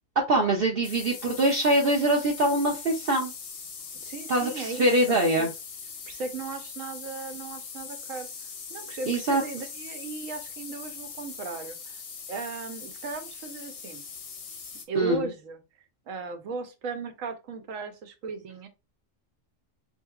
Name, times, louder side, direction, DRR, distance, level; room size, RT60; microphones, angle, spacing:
voice 1, 0.3-3.3 4.3-5.5 9.1-9.4 15.0-15.3, right 1 dB, 50° right, 0.8 m, -23 dB
sound 1, 0.8-14.9, left 5 dB, 80° left, 1.2 m, -41 dB
voice 2, 3.9-5.5 6.1-8.3 8.7-12.0 12.3-14.0 14.9-15.6 16.1-18.7, right 4 dB, 75° right, 1.1 m, -36 dB
4.3 x 2.9 x 2.3 m
omnidirectional pair, 1.4 m